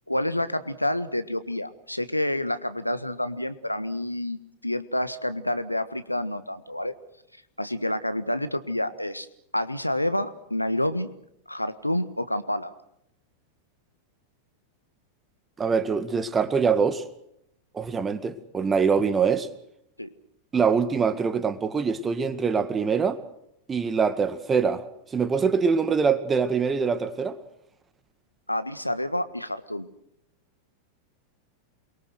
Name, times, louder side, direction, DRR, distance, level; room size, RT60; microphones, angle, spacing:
voice 1, 0.1-6.9 7.6-9.3 9.5-11.1 11.5-12.7 20.0-20.1 28.5-29.9, left 1 dB, 85° left, 1.5 m, -28 dB
voice 2, 15.6-17.0 17.7-19.5 20.5-23.2 23.7-24.8 25.1-27.4, right 5 dB, 20° right, 2.0 m, -24 dB
28.5 x 23.0 x 6.5 m
figure-of-eight pair, 90°, 0 cm